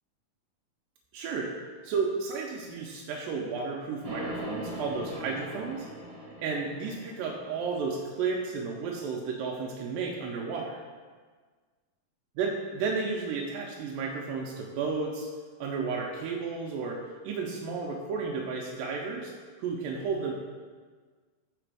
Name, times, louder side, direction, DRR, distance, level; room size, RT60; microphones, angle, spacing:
voice 1, 1.1-1.5 1.8-5.9 6.4-10.8 12.4-15.3 15.6-19.3 19.6-20.3, right 4 dB, 85° right, -1 dB, 2.2 m, -32 dB
sound 1, 4.0-8.1, right 1 dB, 45° right, 1.2 m, -40 dB
4.9 x 4.2 x 4.6 m, 1.5 s
omnidirectional pair, 4.0 m